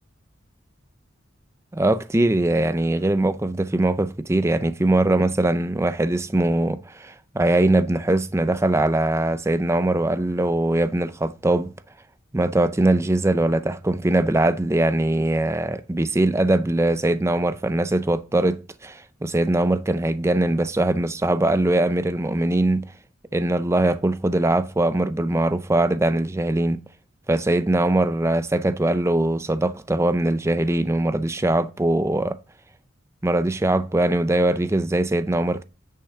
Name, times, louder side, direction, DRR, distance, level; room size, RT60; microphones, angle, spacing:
voice 1, 1.7-11.7 12.3-22.9 23.3-26.8 27.3-32.4 33.2-35.6, right 1 dB, 15° right, 0.4 m, -21 dB
9.8 x 5.7 x 3.6 m
head